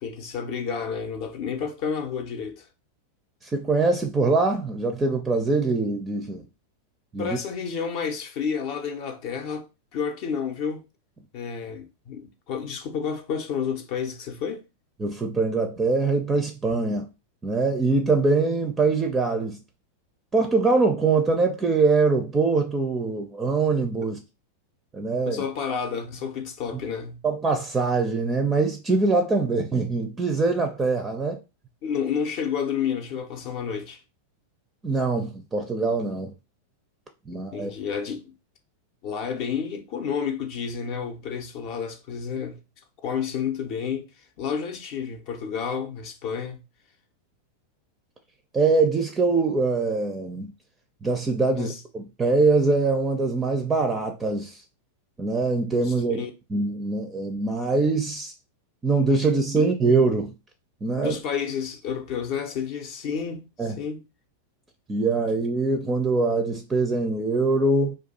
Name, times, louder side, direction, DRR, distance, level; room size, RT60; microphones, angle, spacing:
voice 1, 0.0-2.7 7.2-9.7 9.9-10.8 11.3-14.6 25.3-27.2 31.8-34.0 37.5-38.3 39.0-42.6 43.0-46.6 51.5-51.8 55.8-56.3 59.6-59.7 61.0-64.0, left 7 dB, 45° left, 0.6 m, -30 dB
voice 2, 3.4-6.4 7.1-7.3 15.0-17.1 17.4-19.6 20.3-24.2 24.9-25.4 27.2-31.4 34.8-36.3 37.3-37.7 48.5-50.5 51.0-54.6 55.2-56.2 56.5-58.3 58.8-60.3 60.8-61.2 63.6-63.8 64.9-67.9, right 3 dB, 15° right, 0.5 m, -23 dB
2.5 x 2.3 x 4.0 m
figure-of-eight pair, 90°, 0 cm